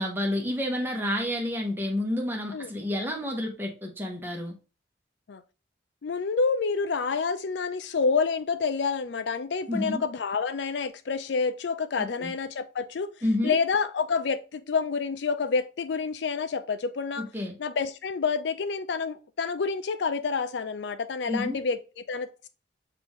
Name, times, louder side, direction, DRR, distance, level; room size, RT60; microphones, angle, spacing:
voice 1, 0.0-4.5 9.7-10.1 12.0-12.3 13.2-13.5 17.2-17.5 21.3-21.6, left 1 dB, 10° right, 0.8 m, -29 dB
voice 2, 6.0-13.1 13.4-17.3 17.6-22.5, left 5 dB, 75° left, 0.4 m, -28 dB
5.4 x 2.5 x 3.1 m
head